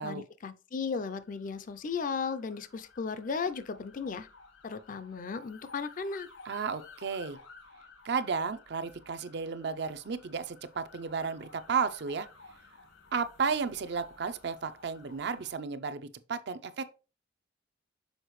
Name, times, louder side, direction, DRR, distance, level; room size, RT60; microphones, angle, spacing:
voice 1, 0.0-4.3 4.6-6.3, left 5 dB, 45° left, 0.4 m, -35 dB
sound 1, 1.0-15.5, left 4 dB, 80° left, 1.4 m, -55 dB
voice 2, 6.4-7.4 8.0-12.3 13.1-16.9, right 5 dB, 60° right, 0.5 m, -33 dB
6.4 x 4.9 x 3.1 m
head